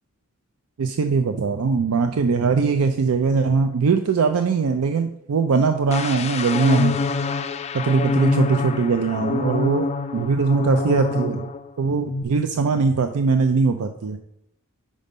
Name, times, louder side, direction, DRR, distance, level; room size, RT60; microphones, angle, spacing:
voice 1, 0.8-7.0 7.7-11.5 11.8-14.2, right 4 dB, 80° right, 7 dB, 0.5 m, -21 dB
sound 1, 5.9-11.6 11.9-12.2, left 4 dB, 30° left, 0.3 m, -26 dB
5.3 x 5.0 x 5.2 m, 0.76 s
head